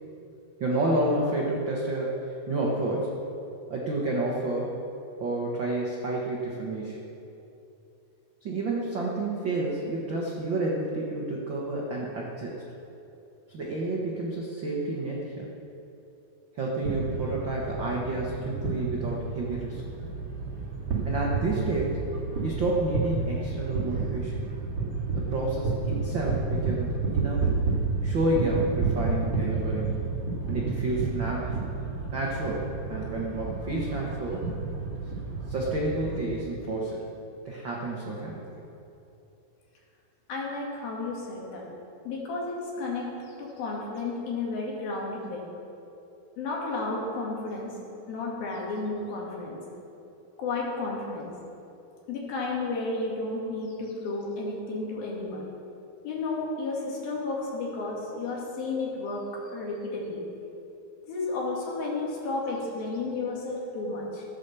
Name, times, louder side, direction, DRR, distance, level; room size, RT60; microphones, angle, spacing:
voice 1, 0.6-3.1 3.7-4.7 5.2-7.0 8.4-12.6 13.5-15.5 16.5-19.8 21.0-22.0 22.4-24.3 25.1-27.5 28.0-30.0 30.5-31.5 32.1-34.4 35.5-37.0 37.4-38.4, right 2 dB, 80° right, -3 dB, 1.0 m, -30 dB
sound 1, 16.8-36.2, right 4 dB, 40° right, 3.3 m, -31 dB
voice 2, 40.3-41.7 42.1-45.4 46.4-47.8 48.1-49.6 50.4-51.3 52.1-55.4 56.0-59.3 59.5-60.2 61.1-64.3, left 3 dB, 70° left, -3 dB, 4.0 m, -32 dB
14.0 x 8.3 x 6.9 m, 2.9 s
omnidirectional pair, 4.4 m